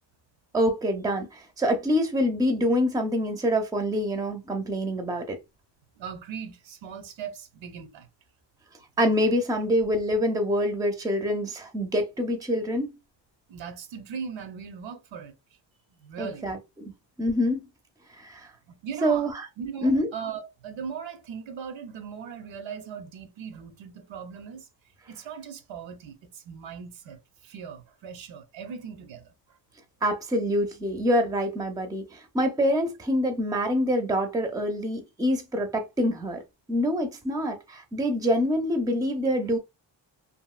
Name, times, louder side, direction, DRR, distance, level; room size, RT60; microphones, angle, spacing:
voice 1, 0.5-5.4 9.0-12.9 16.2-16.9 17.2-17.6 18.2-18.5 19.0-19.5 19.8-20.1 30.0-36.4 36.7-39.6, equal, 10° right, 0.4 m, -26 dB
voice 2, 6.0-8.1 13.5-15.3 15.9-16.5 18.7-19.3 19.6-24.7 25.1-29.3, right 7 dB, 85° right, 0.7 m, -39 dB
2.9 x 2.6 x 2.3 m
wide cardioid pair, 135°, 44 cm